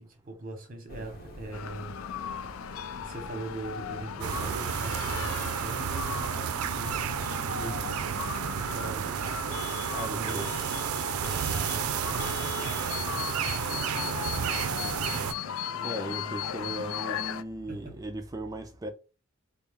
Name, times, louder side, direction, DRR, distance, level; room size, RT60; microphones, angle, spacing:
voice 1, 0.0-2.1 3.0-7.9 8.6-9.4 10.1-11.0 11.7-17.0 17.7-18.1, right 2 dB, 40° right, 1.0 m, -42 dB
sound 1, 0.9-9.4, equal, 45° left, 0.9 m, -47 dB
sound 2, 1.5-17.4, left 9 dB, 75° left, 0.3 m, -37 dB
sound 3, 4.2-15.3, right 8 dB, 90° right, 0.4 m, -31 dB
voice 2, 9.9-10.5 15.8-18.9, right 1 dB, 15° right, 0.3 m, -37 dB
4.2 x 2.0 x 3.5 m
head